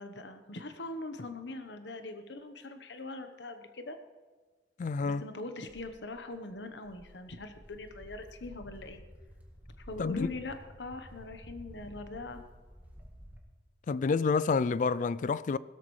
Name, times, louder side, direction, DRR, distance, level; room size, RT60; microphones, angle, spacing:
voice 1, 0.0-4.0 5.0-9.0 9.8-12.4, left 2 dB, 80° left, 1.1 m, -42 dB
voice 2, 4.8-5.2 10.0-10.3 13.9-15.6, left 4 dB, 45° left, 0.3 m, -28 dB
Walk footsteps, 5.7-13.4, equal, 10° right, 1.8 m, -52 dB
16.5 x 13.5 x 3.3 m
head